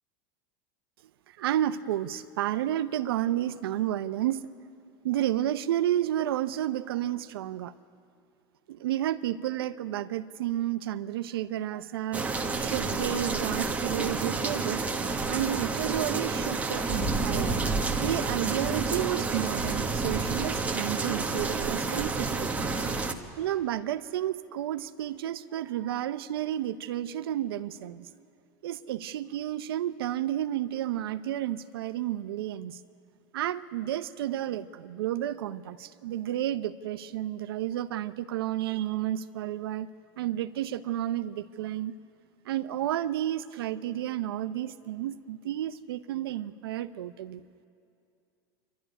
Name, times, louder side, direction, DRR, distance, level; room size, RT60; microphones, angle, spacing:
voice 1, 1.4-4.5 5.0-7.7 8.7-12.3 12.6-14.8 15.3-17.6 18.0-22.7 23.4-28.1 28.6-32.8 33.3-39.9 40.2-42.0 42.5-47.4, right 12 dB, 85° right, 12 dB, 0.7 m, -31 dB
sound 1, 12.1-23.1, right 3 dB, 10° right, 1.3 m, -29 dB
26.0 x 12.5 x 10.0 m, 2.5 s
supercardioid pair, 120°, 12 cm